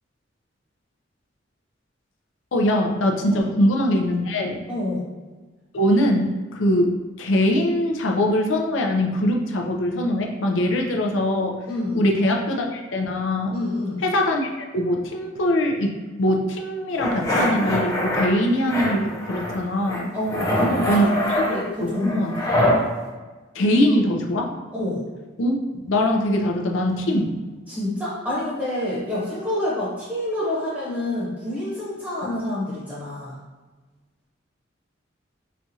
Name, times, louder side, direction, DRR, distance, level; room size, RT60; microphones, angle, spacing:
voice 1, 2.5-4.6 5.7-11.6 11.9-13.5 14.0-20.1 20.9-22.4 23.5-24.5 25.4-25.6 25.9-27.3 32.2-32.3, left 1 dB, 80° left, 2 dB, 0.5 m, -22 dB
voice 2, 4.7-5.0 11.6-12.0 13.5-14.0 20.1-20.9 21.4-22.5 24.7-25.0 27.7-33.4, left 1 dB, 10° right, -8 dB, 0.9 m, -27 dB
sound 1, 17.0-18.3 18.7-19.6 19.9-22.8, left 1 dB, 15° left, 0.5 m, -24 dB
4.2 x 2.3 x 2.7 m, 1.3 s
head